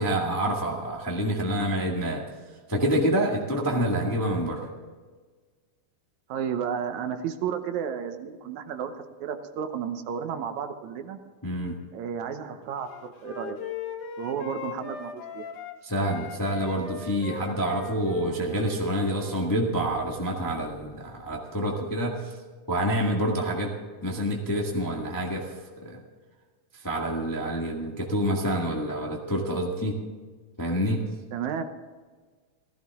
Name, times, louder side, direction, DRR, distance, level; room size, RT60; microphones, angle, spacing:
voice 1, 0.0-2.2 2.7-4.7 11.4-11.8 15.8-22.3 22.7-23.7 24.0-25.5 25.8-26.0 26.8-30.0 30.6-31.1, equal, 10° left, -1 dB, 0.9 m, -27 dB
voice 2, 3.6-4.1 6.3-8.9 9.2-11.2 11.9-13.6 14.2-15.4 31.3-31.6, right 8 dB, 75° right, 8 dB, 2.2 m, -32 dB
Wind instrument woodwind instrument, 12.9-15.8 16.0-19.5, left 6 dB, 85° left, 2.7 m, -39 dB
16.0 x 15.0 x 3.6 m, 1.4 s
omnidirectional pair, 3.4 m